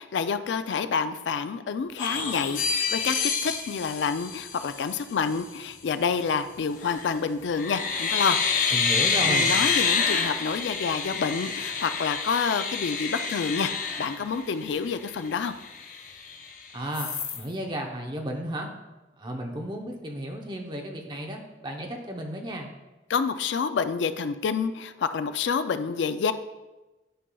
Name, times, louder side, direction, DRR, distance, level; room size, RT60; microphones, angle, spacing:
voice 1, 0.0-3.2 3.4-8.8 9.2-13.7 14.0-15.5 23.1-26.3, left 5 dB, 70° left, 11 dB, 0.4 m, -28 dB
sound 1, 2.0-5.0 6.8-7.2 7.5-14.8 15.2-15.3 15.6-16.5 16.9-17.4, left 5 dB, 45° left, 0.7 m, -28 dB
voice 2, 8.7-9.5 16.7-18.7 19.2-22.7, equal, 25° right, 2 dB, 0.7 m, -33 dB
10.0 x 5.4 x 2.3 m, 1.1 s
head